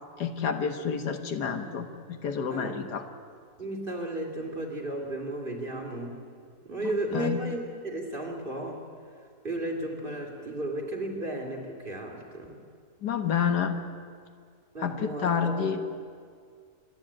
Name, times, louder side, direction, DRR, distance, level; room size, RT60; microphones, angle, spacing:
voice 1, 0.2-3.1 6.8-7.4 13.0-13.8 14.8-15.8, left 7 dB, 85° left, 7 dB, 1.9 m, -29 dB
voice 2, 3.6-6.2 6.6-8.8 9.4-12.6 14.7-15.7, right 1 dB, 35° right, 1 dB, 2.9 m, -34 dB
27.0 x 11.5 x 8.7 m, 2.1 s
omnidirectional pair, 1.7 m